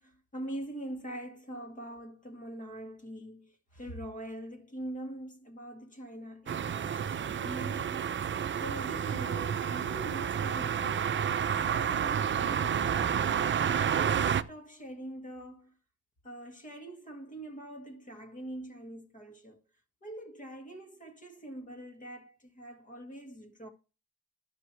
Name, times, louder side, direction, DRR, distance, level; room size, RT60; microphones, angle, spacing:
voice 1, 0.0-8.0 8.5-11.1 11.6-13.4 13.7-15.7 16.2-19.6 20.0-23.7, right 1 dB, 25° left, 2.1 m, -43 dB
sound 1, 6.5-14.4, right 8 dB, 40° right, 0.7 m, -30 dB
11.5 x 5.7 x 3.3 m
cardioid pair, 90°, 30 cm